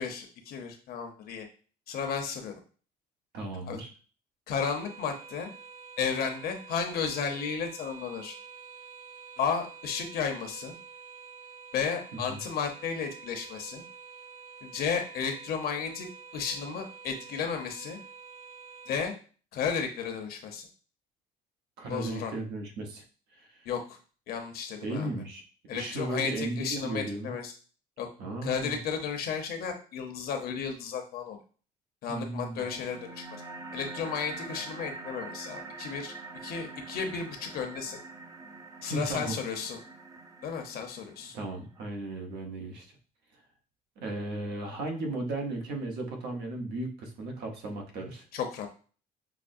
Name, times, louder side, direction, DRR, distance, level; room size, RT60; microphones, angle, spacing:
voice 1, 0.0-1.4 1.9-2.5 3.7-3.8 4.5-5.5 6.0-8.4 9.4-10.7 11.7-13.8 14.6-16.1 16.3-18.0 18.9-19.1 19.5-20.7 21.9-22.3 23.7-24.0 24.3-25.1 25.7-27.5 28.0-28.1 28.4-31.4 32.0-33.2 33.7-36.1 36.4-38.0 38.8-39.8 40.4-41.3 48.3-48.7, left 6 dB, 65° left, 4 dB, 0.8 m, -33 dB
voice 2, 3.3-3.9 12.1-12.4 21.8-23.0 23.3-23.7 24.8-25.4 25.7-27.3 28.2-28.8 32.1-32.7 38.8-39.4 41.3-42.9 44.0-48.2, right 2 dB, 75° right, 2 dB, 1.0 m, -35 dB
sound 1, 4.6-19.0, right 6 dB, 55° right, 1.8 m, -48 dB
sound 2, 32.6-41.6, right 3 dB, 20° right, 0.5 m, -44 dB
5.8 x 2.1 x 2.6 m, 0.39 s
cardioid pair, 110°, 17 cm